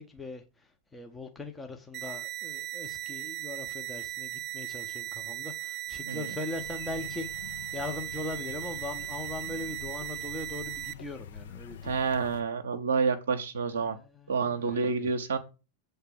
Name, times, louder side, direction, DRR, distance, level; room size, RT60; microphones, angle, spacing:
voice 1, 0.0-11.9 13.8-15.1, left 3 dB, 10° left, 0.7 m, -40 dB
sound 1, 1.9-10.9, right 15 dB, 30° right, 0.4 m, -38 dB
sound 2, 6.5-12.4, left 7 dB, 60° left, 0.6 m, -46 dB
voice 2, 11.8-14.0 14.3-15.4, right 5 dB, 65° right, 0.7 m, -29 dB
7.4 x 3.4 x 6.0 m
figure-of-eight pair, 90°, 0 cm